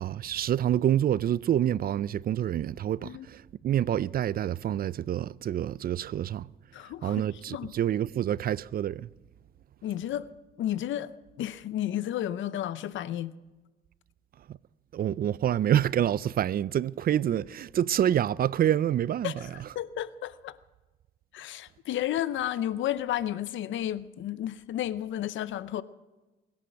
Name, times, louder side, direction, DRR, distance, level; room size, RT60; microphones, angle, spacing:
voice 1, 0.0-6.5 7.0-9.1 14.5-14.6 14.9-19.3 19.6-19.7, right 10 dB, 50° right, 0.4 m, -27 dB
voice 2, 6.7-7.7 9.8-10.3 10.6-11.1 11.4-13.3 19.2-19.5 19.7-20.6 21.3-25.8, left 12 dB, 75° left, 0.7 m, -32 dB
21.5 x 10.5 x 6.3 m
cardioid pair, 90°, 20 cm